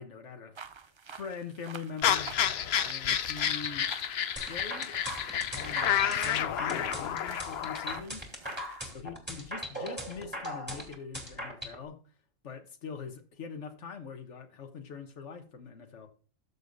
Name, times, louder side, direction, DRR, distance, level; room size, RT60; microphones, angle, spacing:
voice 1, 0.0-2.4 2.8-3.9 4.5-5.0 5.5-8.2 8.9-12.0 12.4-16.1, left 5 dB, 80° left, 1.3 m, -43 dB
sound 1, 0.6-8.9, right 6 dB, 50° right, 0.3 m, -49 dB
sound 2, 2.0-8.0, left 9 dB, 65° left, 0.8 m, -30 dB
sound 3, 4.4-11.7, equal, 10° right, 2.4 m, -39 dB
13.0 x 6.7 x 2.6 m
omnidirectional pair, 1.2 m